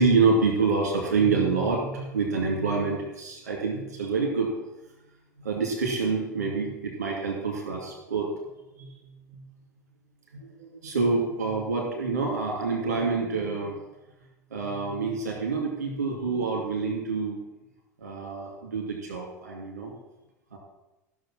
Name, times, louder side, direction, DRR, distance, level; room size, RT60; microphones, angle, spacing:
voice 1, 0.0-4.5 5.4-8.3 8.8-8.9 9.3-9.4 10.4-13.8 14.5-17.4 18.0-19.9 20.5-20.6, right 4 dB, 80° right, -1 dB, 2.5 m, -27 dB
14.0 x 6.4 x 6.0 m, 1.0 s
figure-of-eight pair, 75°, 9 cm